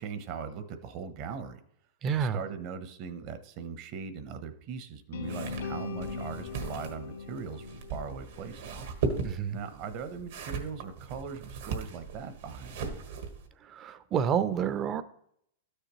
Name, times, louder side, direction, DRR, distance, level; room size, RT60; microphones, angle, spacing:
voice 1, 0.0-1.6 2.2-8.6 9.5-12.8, right 6 dB, 45° right, 10 dB, 1.0 m, -40 dB
voice 2, 2.0-2.4 9.2-9.6 13.6-15.0, right 7 dB, 30° right, 14 dB, 0.6 m, -29 dB
sound 1, 5.1-9.2, left 4 dB, 75° left, 1.8 m, -40 dB
sound 2, 5.2-13.5, right 4 dB, 70° right, 1.5 m, -38 dB
12.5 x 6.5 x 3.1 m, 0.70 s
hypercardioid pair, 130°, 0 cm